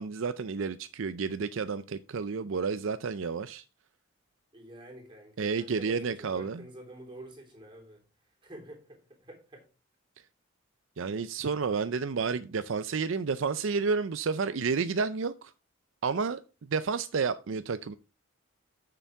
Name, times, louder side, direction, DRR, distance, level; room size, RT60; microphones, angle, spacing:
voice 1, 0.0-3.6 5.4-6.6 11.0-15.5 16.0-17.9, right 5 dB, 65° right, 0.5 m, -31 dB
voice 2, 4.5-9.6, right 1 dB, 25° right, 3.3 m, -48 dB
9.0 x 6.9 x 4.6 m
head